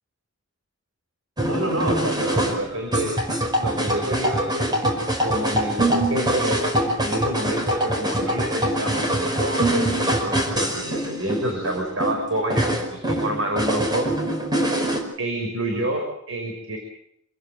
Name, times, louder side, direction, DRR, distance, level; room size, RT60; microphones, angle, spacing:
sound 1, 1.4-15.0, right 1 dB, 20° right, 5.3 m, -24 dB
voice 1, 1.4-3.2 3.6-4.8 5.2-6.6 7.0-14.1 15.2-16.8, right 1 dB, 75° right, 2 dB, 5.7 m, -28 dB
28.5 x 16.0 x 8.0 m, 0.71 s
head